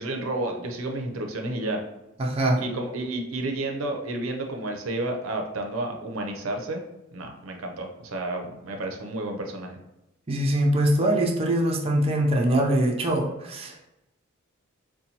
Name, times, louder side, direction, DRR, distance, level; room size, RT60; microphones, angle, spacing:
voice 1, 0.0-1.8 2.6-6.8 7.1-9.8, right 2 dB, 90° right, 3 dB, 0.5 m, -31 dB
voice 2, 2.2-2.6 10.3-13.9, right 1 dB, 30° right, 0 dB, 0.4 m, -23 dB
4.0 x 2.2 x 2.8 m, 0.93 s
head